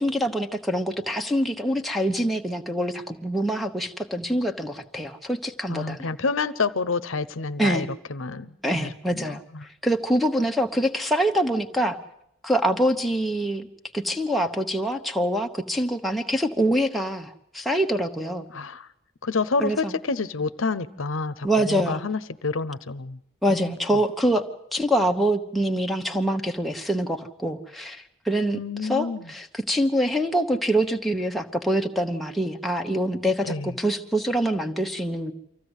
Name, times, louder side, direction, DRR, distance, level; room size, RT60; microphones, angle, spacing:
voice 1, 0.0-6.1 7.6-7.9 8.6-9.4 9.8-12.0 12.4-13.7 13.9-18.5 19.6-19.9 21.4-22.0 23.4-24.4 24.7-35.3, right 1 dB, ahead, 2 dB, 1.1 m, -25 dB
voice 2, 5.7-9.7 18.5-18.9 19.2-23.2 23.5-23.7 28.5-29.3 33.4-33.7, left 4 dB, 75° left, 13 dB, 0.8 m, -29 dB
24.5 x 15.0 x 8.1 m, 0.79 s
head